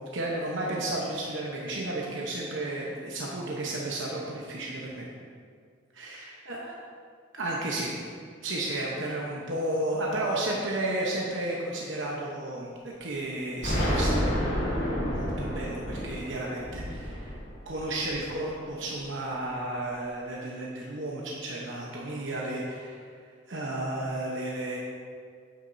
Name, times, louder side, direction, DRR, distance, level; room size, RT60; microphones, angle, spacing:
voice 1, 0.0-5.1 5.9-6.8 7.3-8.0 8.4-14.4 14.7-14.8 15.1-17.4 17.7-23.0 23.5-24.8, right 1 dB, 70° right, -3 dB, 1.0 m, -33 dB
Explosion, 13.6-18.5, equal, 75° left, 2.2 m, -30 dB
8.7 x 8.6 x 2.7 m, 2.1 s
head